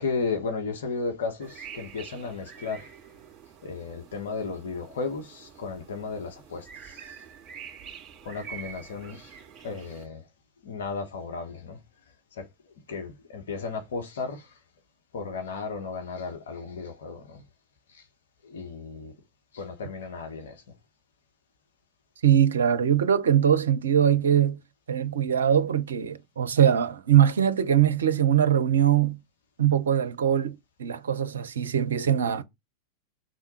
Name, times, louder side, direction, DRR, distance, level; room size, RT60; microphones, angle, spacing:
voice 1, 0.0-2.9 3.6-7.2 8.2-10.2 10.6-11.8 12.3-12.5 12.9-14.5 15.1-17.4 17.9-18.0 18.4-19.1 19.5-20.6, left 4 dB, 60° left, 1.3 m, -34 dB
sound 1, 1.4-10.1, right 8 dB, 25° right, 2.1 m, -46 dB
voice 2, 22.2-24.6 24.9-29.2 29.6-32.4, right 9 dB, 65° right, 0.6 m, -22 dB
6.2 x 3.6 x 4.3 m
figure-of-eight pair, 90°, 0 cm